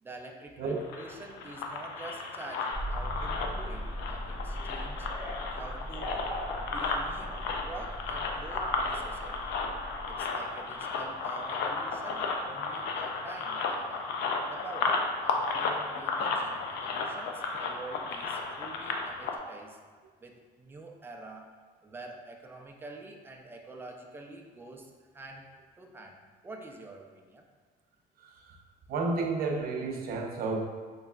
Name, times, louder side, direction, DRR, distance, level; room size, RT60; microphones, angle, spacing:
voice 1, 0.0-5.1 5.5-6.2 6.6-9.5 10.1-14.1 14.5-19.8 20.2-21.5 21.8-25.5 25.8-26.2 26.4-27.5, right 2 dB, 15° right, 1 dB, 0.4 m, -47 dB
sound 1, 0.7-19.4, left 4 dB, 80° left, 0.4 m, -34 dB
sound 2, 2.7-12.7, equal, 55° left, 1.3 m, -39 dB
voice 2, 28.2-28.6 28.9-30.7, right 3 dB, 60° right, 1 dB, 0.6 m, -31 dB
3.9 x 3.2 x 2.3 m, 1.5 s
cardioid pair, 110°, 17 cm